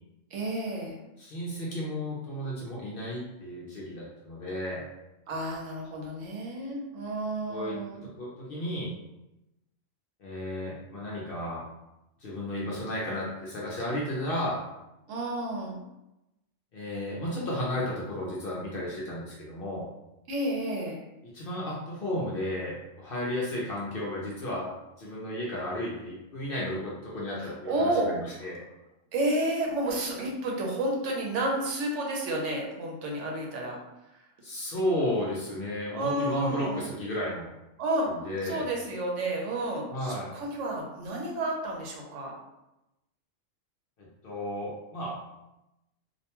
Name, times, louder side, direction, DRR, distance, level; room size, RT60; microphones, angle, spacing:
voice 1, 0.3-0.9 5.3-8.0 15.1-15.8 20.3-21.0 27.4-28.1 29.1-33.8 34.1-34.2 35.9-36.8 37.8-38.1 38.4-42.3, right 1 dB, 70° right, -1 dB, 1.0 m, -31 dB
voice 2, 1.2-4.9 7.5-8.9 10.2-11.6 12.2-14.6 16.7-19.9 21.2-28.6 34.4-37.5 38.1-38.6 39.9-40.3 44.0-45.2, left 1 dB, 60° left, -5 dB, 0.7 m, -33 dB
2.5 x 2.2 x 2.9 m, 0.94 s
omnidirectional pair, 1.3 m